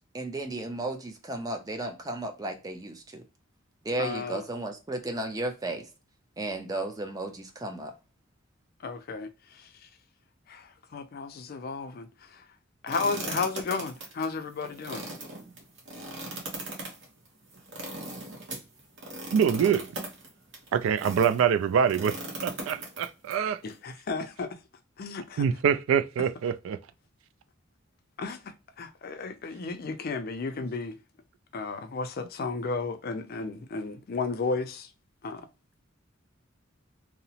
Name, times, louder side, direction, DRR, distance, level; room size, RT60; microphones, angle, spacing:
voice 1, 0.1-3.2 3.8-5.8 6.4-7.9, right 2 dB, 20° right, 0.5 m, -34 dB
voice 2, 4.0-4.4 8.8-9.3 9.5-9.7 10.5-12.4 12.8-15.0 23.6-24.6 25.0-25.5 28.2-28.4 28.8-31.0 31.5-34.9 35.2-35.4, left 4 dB, 50° left, 0.4 m, -33 dB
sound 1, 12.9-21.4 21.9-23.3, right 2 dB, 65° right, 0.9 m, -39 dB
voice 3, 19.3-19.9 20.7-22.2 22.4-23.6 25.4-26.8, right 7 dB, 90° right, 0.3 m, -25 dB
2.8 x 2.0 x 2.7 m
head